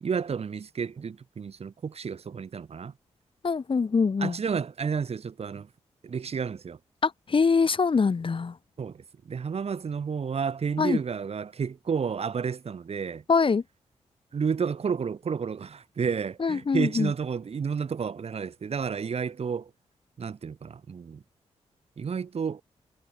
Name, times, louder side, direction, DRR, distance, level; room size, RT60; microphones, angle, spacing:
voice 1, 0.0-2.9 4.2-5.7 6.0-6.8 8.8-9.0 9.3-13.2 14.3-19.7 20.2-21.2 22.0-22.6, right 6 dB, 60° right, 1.4 m, -31 dB
voice 2, 3.4-4.4 7.0-8.6 10.8-11.0 13.3-13.6 16.4-17.1, left 5 dB, 45° left, 1.2 m, -24 dB
cardioid pair, 50°, 12 cm